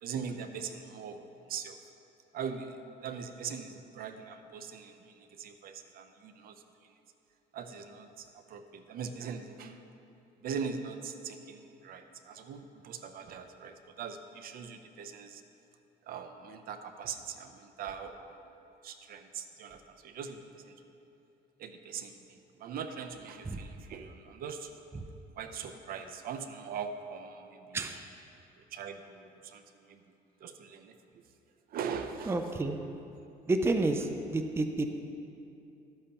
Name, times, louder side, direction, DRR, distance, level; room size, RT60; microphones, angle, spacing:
voice 1, 0.0-1.8 2.3-6.6 6.8-6.9 7.5-9.8 10.4-15.4 16.0-18.4 18.8-20.8 21.6-25.0 25.4-28.0 28.7-30.0 30.4-30.9 31.7-32.4, right 6 dB, 60° right, 8 dB, 0.6 m, -41 dB
voice 2, 32.3-32.8 33.5-34.1 34.3-34.9, right 2 dB, 15° right, 6 dB, 0.5 m, -29 dB
12.5 x 8.6 x 2.9 m, 2.8 s
cardioid pair, 110°, 17 cm